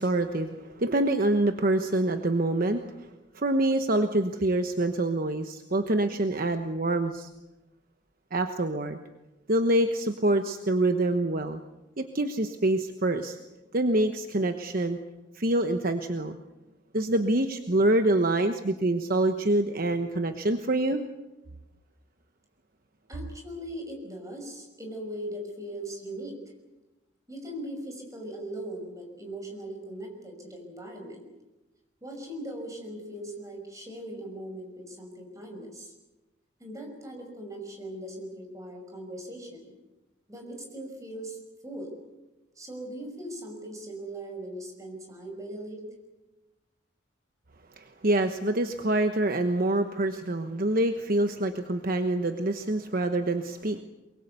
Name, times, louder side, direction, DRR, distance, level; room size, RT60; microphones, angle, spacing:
voice 1, 0.0-3.1 3.3-7.3 8.3-9.0 9.5-11.6 12.0-13.4 13.7-15.0 15.3-16.4 16.9-21.0 47.8-53.8, right 1 dB, 50° right, 7 dB, 1.1 m, -26 dB
voice 2, 23.1-26.4 27.3-31.3 32.0-35.9 36.6-39.7 40.3-41.4 41.6-41.9 42.6-45.8, right 1 dB, 15° right, 3 dB, 5.8 m, -39 dB
23.5 x 22.5 x 8.2 m, 1.0 s
head